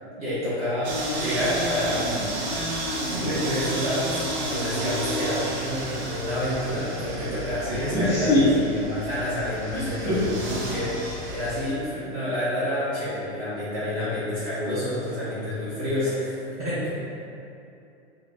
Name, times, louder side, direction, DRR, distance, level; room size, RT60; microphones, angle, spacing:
voice 1, 0.1-2.1 3.1-16.9, left 1 dB, 25° right, -12 dB, 0.8 m, -28 dB
sound 1, 0.8-11.7, right 1 dB, 70° right, 0.9 m, -31 dB
voice 2, 7.8-8.4 9.7-10.2, left 1 dB, 10° left, -14 dB, 0.3 m, -23 dB
3.8 x 2.1 x 3.2 m, 2.7 s
supercardioid pair, 150°, 34 cm